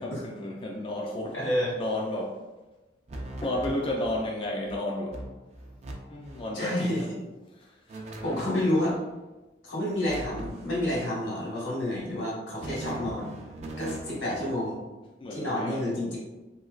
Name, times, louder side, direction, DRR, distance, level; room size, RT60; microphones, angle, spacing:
voice 1, 0.0-1.4 1.8-2.4 3.4-5.2 6.1-7.1 7.6-8.0 15.2-15.9, left 1 dB, 30° left, -2 dB, 0.3 m, -32 dB
voice 2, 1.3-1.7 6.5-7.0 8.2-9.0 9.6-13.3 13.8-14.8 15.3-16.2, left 1 dB, 85° left, -6 dB, 1.5 m, -29 dB
sound 1, 3.1-4.3 4.7-4.8 5.1-5.9 6.2-6.5 7.9-9.0 10.1-11.0 12.6-14.6, right 2 dB, 40° right, 0.4 m, -40 dB
3.1 x 3.1 x 2.4 m, 1.1 s
head